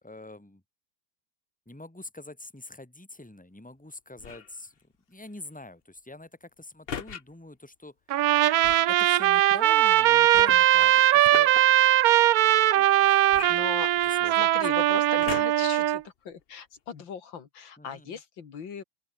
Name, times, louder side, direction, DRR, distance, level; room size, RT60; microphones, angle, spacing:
voice 1, 0.0-0.6 1.7-4.7 5.1-7.9 8.9-11.5 12.7-13.7 14.1-14.5 17.8-18.2, left 2 dB, 5° left, 2.5 m, -45 dB
sound 1, 4.2-4.6 6.9-7.2 8.6-9.0 10.3-11.6 13.3-14.3 15.2-15.7 16.4-16.5, left 7 dB, 45° left, 0.8 m, -38 dB
Trumpet, 8.1-16.0, right 13 dB, 65° right, 1.0 m, -20 dB
voice 2, 13.5-13.9 14.2-18.8, left 7 dB, 85° left, 2.7 m, -39 dB
open air
omnidirectional pair, 2.0 m